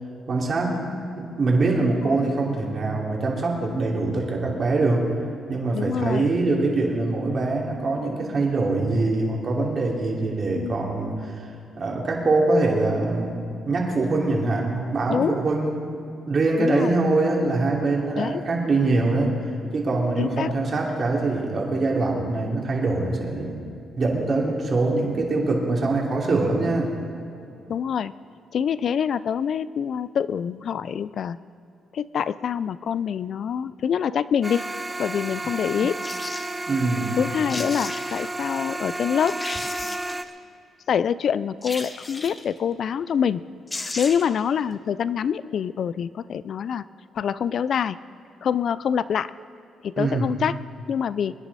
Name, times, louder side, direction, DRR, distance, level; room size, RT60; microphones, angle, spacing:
voice 1, 0.3-0.8 1.2-5.1 5.5-11.5 11.8-15.9 16.3-19.3 19.7-23.6 24.0-26.9 36.7-37.2 50.0-50.3, right 3 dB, 45° right, -1 dB, 2.9 m, -23 dB
voice 2, 5.7-6.3 10.5-10.8 15.1-15.4 16.6-17.0 18.2-18.4 20.2-20.5 27.7-28.1 28.5-31.4 31.9-34.6 35.0-36.0 37.2-39.4 40.9-43.4 44.0-46.8 47.1-48.0 48.4-49.3 49.8-50.6 50.9-51.3, left 8 dB, 60° left, 17 dB, 0.4 m, -25 dB
sound 1, 34.4-40.2, right 2 dB, 15° right, 0.7 m, -32 dB
sound 2, 36.0-36.5 37.2-37.3 37.5-38.3 38.8-38.9 39.3-40.3 41.6-42.5 43.4-43.5 43.7-44.4 44.7-44.8, left 2 dB, 25° left, 1.0 m, -35 dB
22.5 x 10.5 x 4.1 m, 2.7 s
cardioid pair, 90°, 0 cm